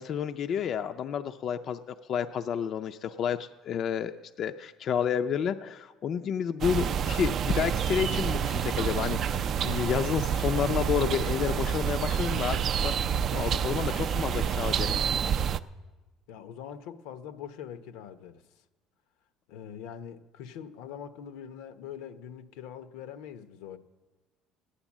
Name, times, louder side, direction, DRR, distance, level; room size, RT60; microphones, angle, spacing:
voice 1, 0.0-4.1 4.4-12.9 13.3-15.1, left 8 dB, 45° left, 0.4 m, -30 dB
sound 1, 6.6-15.6, right 8 dB, 45° right, 0.4 m, -28 dB
voice 2, 16.3-18.4 19.5-23.8, left 8 dB, 85° left, 0.8 m, -43 dB
14.0 x 10.0 x 7.2 m
cardioid pair, 130°, 0 cm